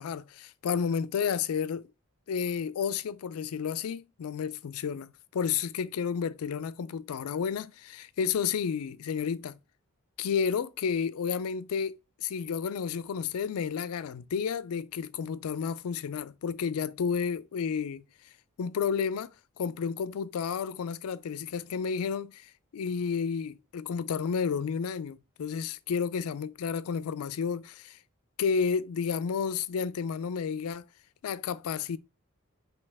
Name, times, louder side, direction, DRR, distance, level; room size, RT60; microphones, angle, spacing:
voice 1, 0.0-1.9 2.3-9.6 10.2-18.0 18.6-19.3 19.6-28.0 28.4-30.8 31.2-32.0, left 6 dB, 80° left, 0.4 m, -31 dB
5.3 x 2.9 x 3.4 m
head